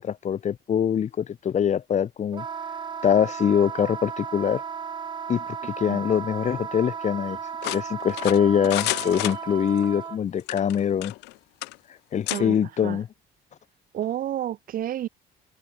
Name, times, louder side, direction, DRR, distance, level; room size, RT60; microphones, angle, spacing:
voice 1, 0.0-2.4 3.0-4.6 5.3-11.1 12.1-13.1, left 8 dB, 45° left, 1.6 m, -24 dB
Wind instrument woodwind instrument, 2.3-10.2, right 7 dB, 30° right, 0.5 m, -35 dB
sound 1, 7.6-9.9 10.4-11.3 11.6-11.8 12.3-12.4, left 22 dB, 90° left, 0.5 m, -31 dB
voice 2, 13.9-15.1, right 11 dB, 55° right, 1.2 m, -30 dB
cardioid pair, 110°, 17 cm